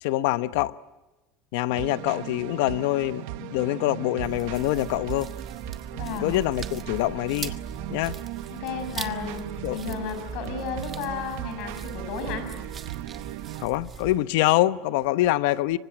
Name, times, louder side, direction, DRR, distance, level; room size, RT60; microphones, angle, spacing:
voice 1, 0.0-0.7 1.5-5.3 6.2-7.5 7.9-8.2 9.6-9.8 13.6-15.8, left 16 dB, 70° left, 0.9 m, -25 dB
sound 1, 1.7-13.7, right 17 dB, 65° right, 1.0 m, -38 dB
sound 2, 4.2-14.2, right 6 dB, 20° right, 1.4 m, -40 dB
voice 2, 5.9-6.4 8.5-12.5, left 5 dB, 50° left, 7.0 m, -33 dB
26.0 x 24.5 x 9.2 m
cardioid pair, 165°, 0 cm